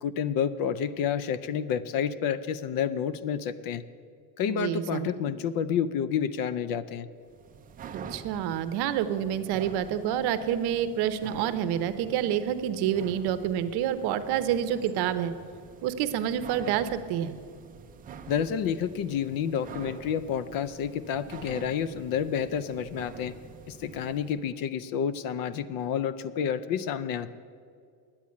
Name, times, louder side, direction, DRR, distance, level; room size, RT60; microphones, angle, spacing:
voice 1, 0.0-3.8 4.4-7.1 18.3-23.3 23.7-27.3, left 8 dB, 50° left, 15 dB, 0.5 m, -29 dB
voice 2, 4.5-5.1 8.1-15.3 15.8-17.3, right 10 dB, 60° right, 12 dB, 0.8 m, -28 dB
sound 1, 7.2-24.4, right 6 dB, 20° right, 0.4 m, -47 dB
10.0 x 8.7 x 9.4 m, 2.2 s
cardioid pair, 175°, 44 cm